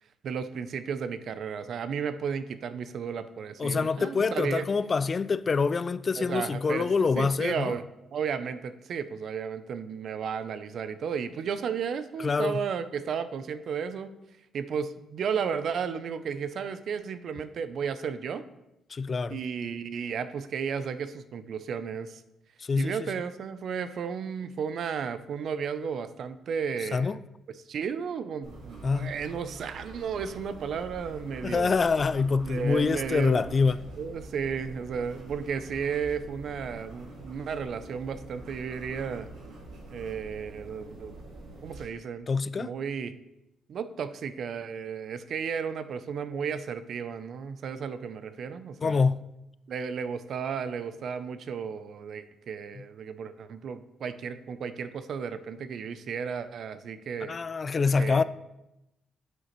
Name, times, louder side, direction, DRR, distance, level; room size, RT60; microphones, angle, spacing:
voice 1, 0.2-4.7 6.2-14.1 14.5-18.5 19.3-22.2 22.8-27.2 27.5-31.7 32.4-33.5 34.0-39.3 39.9-41.2 41.6-42.3 42.6-43.1 43.7-49.0 49.7-57.4 58.0-58.2, right 6 dB, 60° right, 0.5 m, -33 dB
voice 2, 3.6-7.7 12.2-12.6 18.9-19.4 22.7-23.0 26.9-27.2 28.8-29.1 31.4-33.8 42.3-42.7 48.8-49.3 57.3-58.2, left 4 dB, 35° left, 0.3 m, -25 dB
sound 1, 28.4-41.8, right 2 dB, 80° right, 2.2 m, -45 dB
9.2 x 6.5 x 3.1 m
cardioid pair, 90°, 0 cm